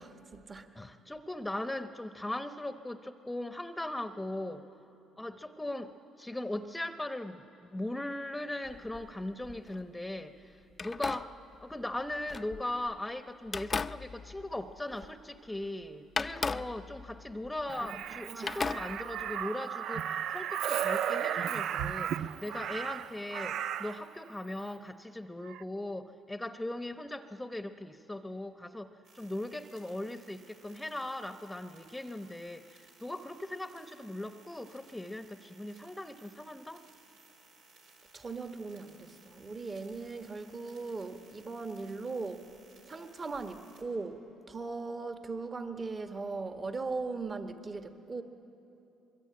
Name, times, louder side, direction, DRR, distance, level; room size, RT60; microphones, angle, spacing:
voice 1, 0.0-0.7 17.8-18.0 18.3-18.8 38.1-42.5 42.9-48.2, right 3 dB, 35° right, 7 dB, 1.4 m, -39 dB
voice 2, 0.8-4.6 5.2-5.9 6.2-11.3 11.6-28.9 29.1-36.8, left 1 dB, 10° left, 8 dB, 0.9 m, -39 dB
sound 1, 8.6-9.8 10.7-13.0 13.5-15.4 15.6-15.7 16.2-18.1 18.5-19.4, left 4 dB, 35° left, 0.5 m, -38 dB
Crow, 17.7-24.0 25.4-25.6, right 9 dB, 70° right, 0.5 m, -35 dB
sound 2, 29.0-43.8, right 3 dB, 90° right, 3.9 m, -61 dB
23.5 x 22.0 x 8.8 m, 2.9 s
supercardioid pair, 75°, 0 cm